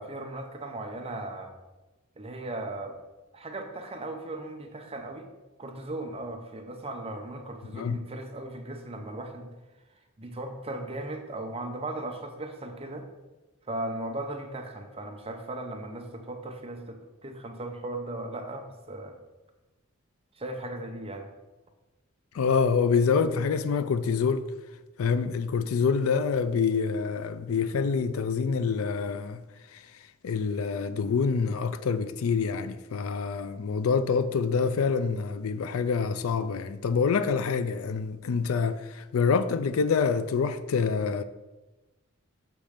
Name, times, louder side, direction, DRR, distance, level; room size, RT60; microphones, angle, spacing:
voice 1, 0.0-1.5 2.2-2.9 3.3-5.3 5.6-9.5 10.2-13.1 13.7-19.1 20.3-21.3, right 2 dB, 30° right, 0.7 m, -37 dB
voice 2, 7.7-8.0 22.3-24.5 25.0-29.4 29.7-29.8 30.2-41.2, left 5 dB, 90° left, 0.4 m, -26 dB
6.9 x 3.1 x 5.0 m
head